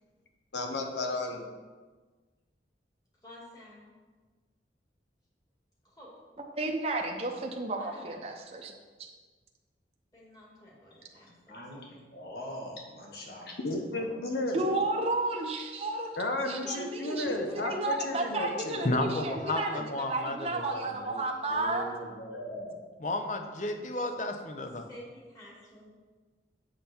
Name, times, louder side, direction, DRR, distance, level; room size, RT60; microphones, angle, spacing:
voice 1, 0.5-1.5 13.6-15.0 16.2-19.0, left 2 dB, 80° left, 4 dB, 1.0 m, -33 dB
voice 2, 3.2-3.9 5.8-6.1 7.8-8.2 10.1-11.6 11.9-12.0 17.0-18.5 24.8-25.9, equal, 20° left, -5 dB, 2.3 m, -51 dB
voice 3, 6.6-8.7 9.0-9.1 14.5-16.2 16.4-21.9, right 2 dB, 35° right, 1 dB, 0.7 m, -32 dB
voice 4, 10.9-13.6 13.9-14.9 20.9-22.9, equal, 60° left, -1 dB, 1.7 m, -44 dB
voice 5, 18.8-20.8 23.0-24.9, left 2 dB, 45° left, 6 dB, 0.7 m, -32 dB
7.5 x 6.8 x 4.4 m, 1.4 s
head